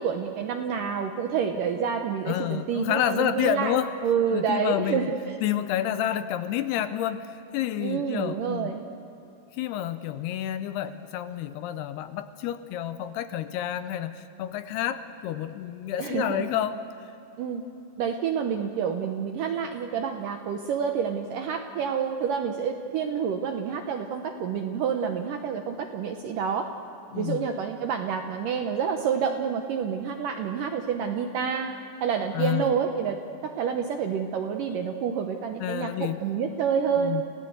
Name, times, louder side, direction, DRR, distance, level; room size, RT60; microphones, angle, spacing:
voice 1, 0.0-3.7 4.0-5.4 7.8-8.8 16.0-16.5 17.4-17.6 18.0-26.7 27.2-31.7 32.0-33.2 33.4-37.1, right 7 dB, 75° right, 5 dB, 2.0 m, -28 dB
voice 2, 2.3-3.9 4.3-5.1 5.4-8.7 9.5-16.8 27.1-27.5 32.3-32.7 35.6-36.2 37.0-37.2, left 11 dB, 80° left, 11 dB, 2.6 m, -29 dB
28.5 x 17.0 x 8.0 m, 3.0 s
omnidirectional pair, 5.0 m